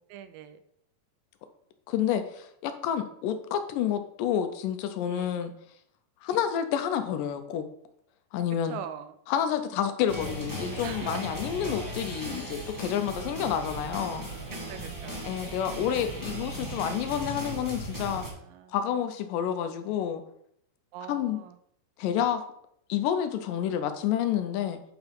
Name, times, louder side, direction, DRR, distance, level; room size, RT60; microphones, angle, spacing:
voice 1, 0.1-0.6 5.1-5.4 8.7-9.1 10.8-11.2 14.7-15.2 15.9-16.1 18.1-18.8 20.9-21.6, right 10 dB, 80° right, 10 dB, 2.1 m, -42 dB
voice 2, 1.9-5.5 6.2-7.7 8.3-8.8 9.3-14.3 15.3-18.2 18.7-20.2 21.1-21.4 22.0-22.4 22.9-24.8, left 9 dB, 80° left, 9 dB, 2.0 m, -29 dB
sound 1, 10.1-18.3, right 1 dB, 20° right, 0.5 m, -37 dB
8.8 x 4.7 x 5.2 m, 0.70 s
omnidirectional pair, 4.5 m